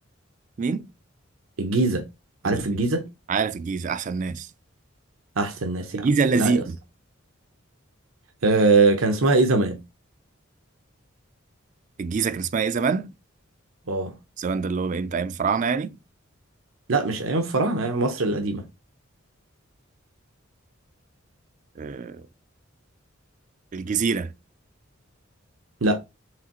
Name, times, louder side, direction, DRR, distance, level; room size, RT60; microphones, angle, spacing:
voice 1, 0.6-0.9 2.4-2.8 3.3-4.5 5.9-6.8 12.0-13.1 14.4-16.0 21.8-22.3 23.7-24.3, right 5 dB, 40° right, 0.3 m, -25 dB
voice 2, 1.6-2.0 2.4-3.1 5.4-6.1 6.3-6.6 8.4-9.8 13.9-14.1 16.9-18.6 25.8-26.0, right 3 dB, 90° right, 0.8 m, -22 dB
4.8 x 3.4 x 3.0 m
head